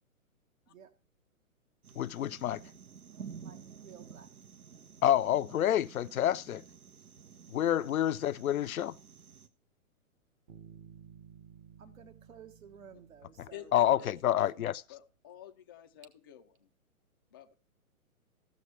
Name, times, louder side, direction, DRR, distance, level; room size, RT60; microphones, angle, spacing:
sound 1, 1.8-9.5, right 7 dB, 85° right, 1.1 m, -51 dB
voice 1, 2.0-2.6 5.0-6.6 7.5-8.9 13.7-14.8, left 11 dB, 75° left, 0.7 m, -28 dB
voice 2, 3.4-4.3 11.8-14.6, right 7 dB, 70° right, 1.5 m, -55 dB
Bass guitar, 10.5-14.2, right 7 dB, 30° right, 0.9 m, -55 dB
voice 3, 13.5-16.7 17.3-17.5, left 9 dB, 15° left, 0.4 m, -50 dB
16.0 x 6.5 x 3.1 m
hypercardioid pair, 135°, 43 cm